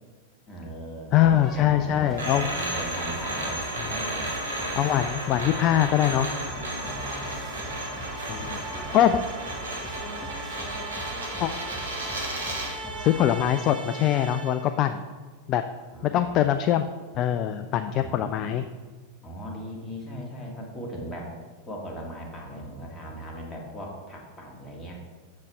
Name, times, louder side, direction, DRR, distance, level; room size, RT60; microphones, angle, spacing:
voice 1, 0.5-4.3 6.6-8.0 8.3-9.0 12.3-12.4 15.9-16.5 18.0-18.4 19.2-21.4 21.7-25.0, equal, 15° left, -1 dB, 1.9 m, -39 dB
voice 2, 1.1-2.5 4.8-6.3 8.3-8.6 8.9-9.2 11.4-11.5 13.0-15.0 15.5-15.6 16.0-16.9 17.1-18.6, left 11 dB, 35° left, 9 dB, 0.3 m, -23 dB
sound 1, 1.2-13.6, right 2 dB, 5° right, 1.3 m, -41 dB
sound 2, 2.2-12.8, right 1 dB, 75° right, 1.8 m, -33 dB
sound 3, 6.3-14.8, right 2 dB, 35° right, 0.9 m, -41 dB
7.4 x 6.5 x 4.5 m, 1.4 s
figure-of-eight pair, 90°, 0 cm